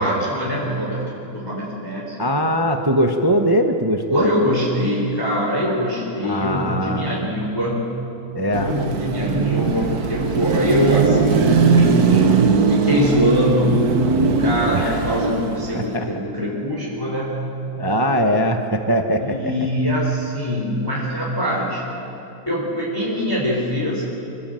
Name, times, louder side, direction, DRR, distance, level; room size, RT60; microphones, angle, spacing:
voice 1, 0.0-2.1 4.1-7.9 8.6-12.2 12.7-13.9 14.2-17.4 19.2-21.8 22.5-24.2, equal, 10° left, -4 dB, 3.8 m, -23 dB
voice 2, 2.2-4.3 6.2-7.3 8.3-8.7 14.7-15.0 15.7-16.1 17.8-19.7, equal, 25° right, 5 dB, 0.5 m, -21 dB
Car passing by / Traffic noise roadway noise / Engine, 8.5-15.9, right 5 dB, 50° right, 1.5 m, -19 dB
26.5 x 16.0 x 7.6 m, 2.8 s
omnidirectional pair, 2.2 m